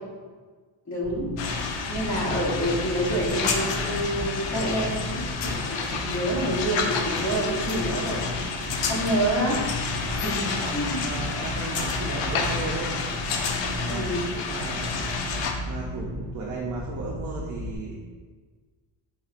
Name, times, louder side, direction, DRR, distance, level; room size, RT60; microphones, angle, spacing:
voice 1, 0.9-1.3 1.9-8.2 8.5-9.6 10.1-11.0 13.9-14.3, right 1 dB, 35° left, -4 dB, 1.0 m, -28 dB
sound 1, 1.0-17.8, equal, 20° right, 1.2 m, -35 dB
sound 2, 1.4-15.5, left 5 dB, 60° left, 0.5 m, -30 dB
voice 2, 10.6-12.9 13.8-15.2 15.7-18.0, right 3 dB, 40° right, -3 dB, 0.4 m, -36 dB
4.3 x 4.2 x 2.5 m, 1.4 s
cardioid pair, 170°, 50 cm